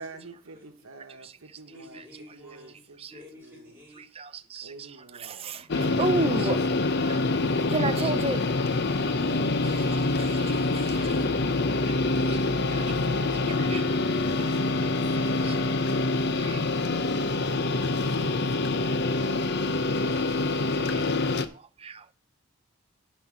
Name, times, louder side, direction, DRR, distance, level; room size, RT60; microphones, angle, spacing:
voice 1, 0.0-2.0 2.3-3.0 3.4-3.7 4.6-5.7 9.4-9.9 13.9-15.6 17.1-18.8, right 3 dB, 85° right, 1.1 m, -48 dB
voice 2, 0.5-0.9 1.6-2.8 3.1-4.1 6.1-7.3 9.2-9.5 12.1-13.1, left 1 dB, 10° right, 3.5 m, -49 dB
voice 3, 4.2-4.7 5.2-6.6 7.7-8.4 9.9-11.2 13.5-13.8 15.4-15.6 16.4-16.6 20.9-21.0 21.8-22.0, right 3 dB, 25° right, 0.5 m, -32 dB
sound 1, 5.7-21.5, left 2 dB, 50° left, 0.7 m, -26 dB
sound 2, 8.1-13.5, right 1 dB, 10° left, 1.1 m, -44 dB
9.5 x 4.3 x 7.5 m
head